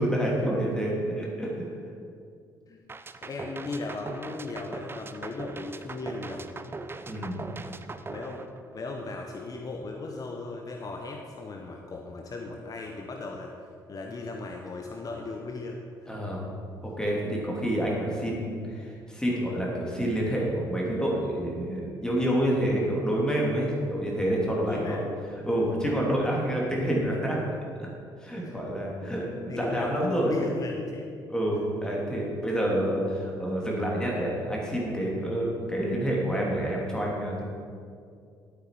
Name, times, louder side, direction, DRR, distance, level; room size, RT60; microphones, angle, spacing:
voice 1, 0.0-1.7 7.1-7.4 16.1-16.5 16.8-25.0 25.4-27.4 27.8-27.9 28.2-30.3 31.3-37.4, right 1 dB, 5° left, -3 dB, 2.9 m, -28 dB
sound 1, 2.9-9.1, right 3 dB, 20° right, 0.6 m, -40 dB
voice 2, 3.2-6.7 8.1-8.4 8.7-13.5 13.9-15.8 24.6-25.1 28.4-28.6 29.1-29.2 29.5-31.1 35.6-35.7, left 3 dB, 35° left, 2 dB, 1.1 m, -36 dB
12.0 x 8.6 x 4.8 m, 2.3 s
figure-of-eight pair, 50°, 11 cm